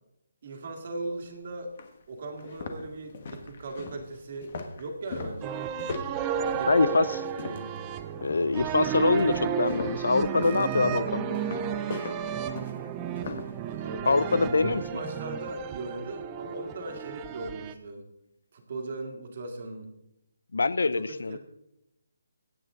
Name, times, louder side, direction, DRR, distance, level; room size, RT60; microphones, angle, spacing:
voice 1, 0.4-1.7 2.1-5.6 6.3-7.7 13.7-18.1 18.5-19.9 20.8-21.4, right 2 dB, 30° right, 4 dB, 2.1 m, -39 dB
sound 1, 1.2-1.3 1.8-1.9 2.3-7.8 8.2-8.6 9.2-13.6, left 4 dB, 30° left, 1.3 m, -39 dB
sound 2, 5.4-17.7, right 9 dB, 10° right, 0.4 m, -33 dB
voice 2, 6.6-7.1 8.2-11.4 14.1-15.0 20.5-21.4, left 3 dB, 70° left, 17 dB, 0.6 m, -24 dB
22.5 x 9.0 x 3.8 m, 0.84 s
hypercardioid pair, 180°, 0 cm